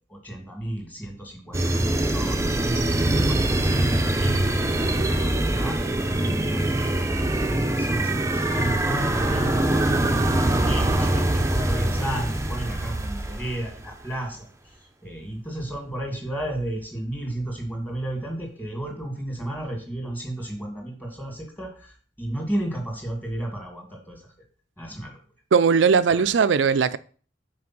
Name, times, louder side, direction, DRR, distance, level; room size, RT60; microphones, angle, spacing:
voice 1, 0.1-2.9 3.2-5.9 6.1-24.2 24.8-25.2 26.1-26.2, right 1 dB, 10° left, 2.3 m, -33 dB
sound 1, 1.5-13.9, right 1 dB, 15° right, 0.7 m, -23 dB
voice 2, 25.5-27.0, right 6 dB, 75° right, 0.4 m, -19 dB
6.0 x 4.7 x 6.1 m
head